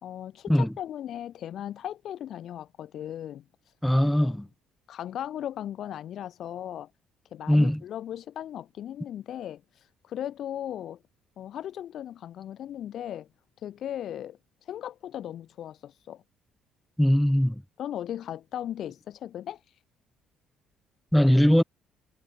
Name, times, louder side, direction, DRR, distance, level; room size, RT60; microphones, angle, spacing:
voice 1, 0.0-3.4 4.0-4.3 4.9-6.9 7.3-9.6 10.0-11.0 11.4-13.3 13.6-14.4 14.7-16.2 17.8-19.6, left 11 dB, 55° left, 2.7 m, -37 dB
voice 2, 3.8-4.5 7.5-7.8 17.0-17.6 21.1-21.6, equal, ahead, 0.5 m, -21 dB
cardioid pair, 120°, 0 cm